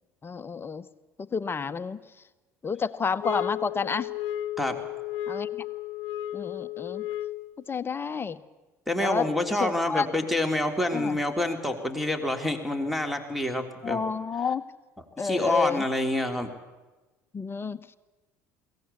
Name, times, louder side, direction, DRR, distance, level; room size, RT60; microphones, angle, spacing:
voice 1, 0.2-0.8 1.3-2.0 2.6-4.1 5.3-5.6 6.3-7.1 7.7-8.4 9.0-9.3 9.6-10.1 10.9-11.2 13.8-14.6 15.2-15.8 17.3-17.8, left 5 dB, 25° left, 13 dB, 1.0 m, -30 dB
sound 1, 3.2-7.6, left 12 dB, 60° left, 0.8 m, -33 dB
voice 2, 8.9-14.0 15.2-16.5, left 1 dB, ahead, 7 dB, 3.2 m, -27 dB
21.5 x 18.0 x 8.4 m, 1.2 s
figure-of-eight pair, 60°, 9 cm